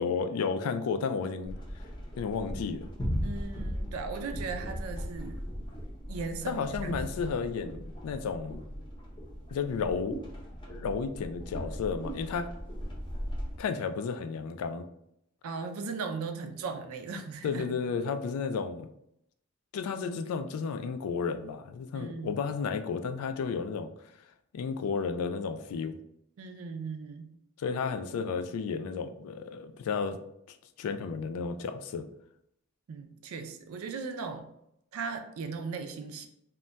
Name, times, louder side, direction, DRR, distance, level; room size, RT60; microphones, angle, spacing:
voice 1, 0.0-1.6 2.2-2.9 6.5-8.6 9.5-10.2 10.7-12.5 13.6-14.8 17.4-18.9 19.7-23.9 24.5-26.0 27.6-30.2 30.5-32.1, left 5 dB, 85° left, 8 dB, 0.3 m, -32 dB
sound 1, 1.4-13.6, equal, 20° left, 0.6 m, -38 dB
voice 2, 3.2-5.4 6.1-6.9 15.4-17.7 21.9-22.3 26.4-27.3 32.9-34.5 34.9-36.3, right 4 dB, 70° right, 7 dB, 0.4 m, -37 dB
2.2 x 2.1 x 3.8 m, 0.76 s
head